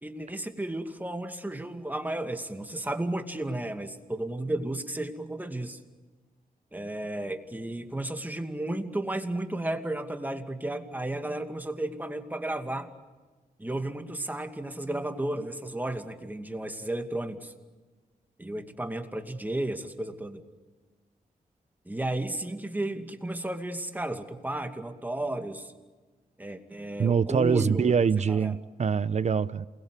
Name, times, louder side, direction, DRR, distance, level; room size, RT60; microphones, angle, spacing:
voice 1, 0.0-5.8 6.7-12.9 13.6-17.5 18.4-20.4 21.9-25.7 26.4-27.9 28.3-28.6, right 1 dB, 10° right, 5 dB, 2.4 m, -33 dB
voice 2, 27.0-29.7, right 6 dB, 55° right, 15 dB, 0.9 m, -24 dB
28.0 x 21.0 x 8.3 m, 1.3 s
cardioid pair, 85°, 14 cm